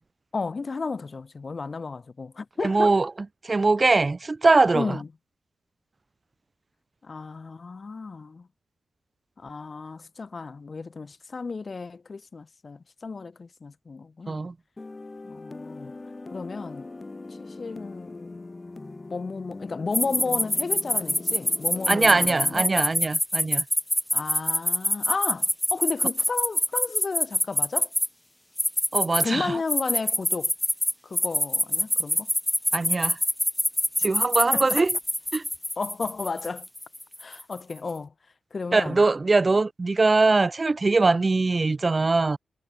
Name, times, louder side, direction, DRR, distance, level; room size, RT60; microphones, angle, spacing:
voice 1, 0.3-2.9 4.7-5.1 7.0-8.5 9.4-14.4 15.2-16.0 16.3-16.9 17.4-18.5 19.1-22.7 24.1-27.9 29.2-30.5 31.0-32.3 34.5-34.8 35.8-36.7 37.2-38.1 38.5-39.1, left 4 dB, 50° left, 4.4 m, -33 dB
voice 2, 2.6-3.1 3.4-5.0 14.3-14.5 21.9-23.6 28.9-29.5 32.7-33.2 34.0-34.9 35.3-35.4 38.7-42.4, right 3 dB, 40° right, 0.4 m, -22 dB
sound 1, 14.8-22.6, left 3 dB, 35° left, 3.8 m, -41 dB
sound 2, 19.9-28.1 28.6-29.3 29.7-37.5, left 1 dB, 10° left, 1.9 m, -24 dB
cardioid pair, 50°, 0 cm